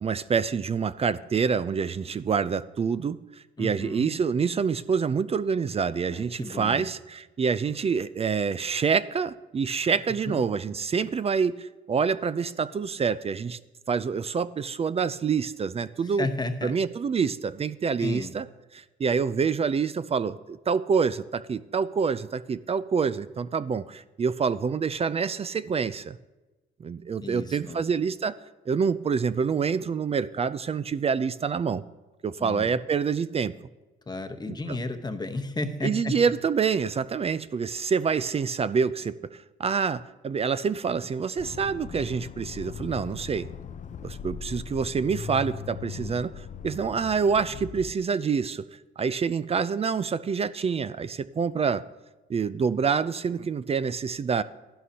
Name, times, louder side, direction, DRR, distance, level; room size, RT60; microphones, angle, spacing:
voice 1, 0.0-3.2 3.6-13.6 13.9-16.3 16.6-18.5 18.7-26.2 26.8-28.4 28.7-31.8 32.2-33.6 34.5-34.6 35.8-43.5 44.0-48.7 49.0-51.8 52.3-54.4, right 6 dB, 30° right, 15 dB, 0.4 m, -27 dB
voice 2, 3.6-4.1 6.1-6.9 10.3-10.4 16.0-16.8 18.0-18.3 27.2-27.8 32.4-32.7 34.1-36.1, left 2 dB, 20° left, 7 dB, 0.9 m, -33 dB
Accelerating revving vroom, 41.4-48.0, left 7 dB, 40° left, 0.4 m, -39 dB
12.5 x 11.0 x 2.8 m, 1.1 s
cardioid pair, 90°, 20 cm